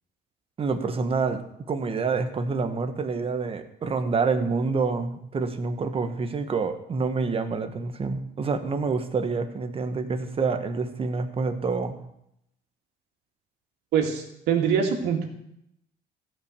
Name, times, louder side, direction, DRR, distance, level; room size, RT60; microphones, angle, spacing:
voice 1, 0.6-1.4 1.7-12.0, right 4 dB, 35° right, 8 dB, 1.3 m, -27 dB
voice 2, 13.9-15.3, right 7 dB, 80° right, 2 dB, 2.4 m, -24 dB
15.5 x 5.7 x 6.8 m, 0.78 s
cardioid pair, 110°, 17 cm